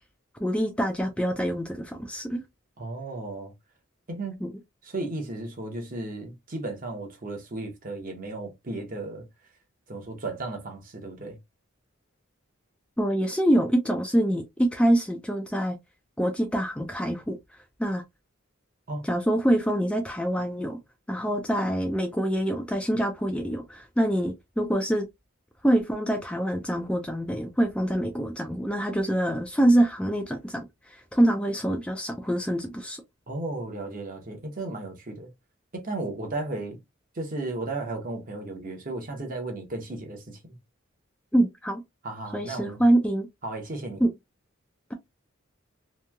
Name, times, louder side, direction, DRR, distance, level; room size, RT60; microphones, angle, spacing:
voice 1, 0.4-2.4 13.0-15.8 16.2-17.4 17.8-18.0 19.0-20.8 21.1-25.0 25.6-33.0 41.3-41.8 42.3-43.3 44.0-44.1, right 1 dB, 5° left, 0.4 m, -25 dB
voice 2, 2.8-3.5 4.1-4.4 4.8-9.2 9.9-11.4 18.9-19.1 33.3-35.3 35.7-36.8 37.1-40.6 42.0-42.8 43.4-44.0, right 2 dB, 40° right, 0.8 m, -34 dB
2.9 x 2.7 x 2.3 m
head